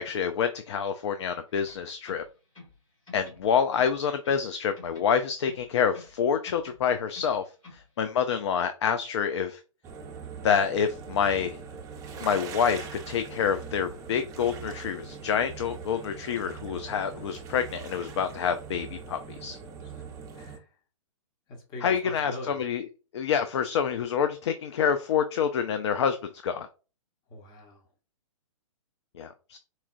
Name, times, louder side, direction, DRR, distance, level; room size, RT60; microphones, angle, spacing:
voice 1, 0.0-2.2 3.1-7.4 7.7-9.6 10.4-11.6 12.2-19.6 21.8-22.8 23.1-26.2 26.4-26.7 29.2-29.6, left 7 dB, 55° left, 9 dB, 0.4 m, -27 dB
sound 1, 1.5-2.8 3.1-4.5 4.8-6.2 6.5-7.9, left 3 dB, 75° left, 1.9 m, -51 dB
sound 2, 9.8-20.6, right 6 dB, 20° right, 0.6 m, -41 dB
voice 2, 20.3-20.8 21.5-22.6 27.3-27.9, left 2 dB, 25° left, 1 dB, 1.0 m, -42 dB
4.2 x 2.3 x 2.5 m, 0.34 s
figure-of-eight pair, 120°, 17 cm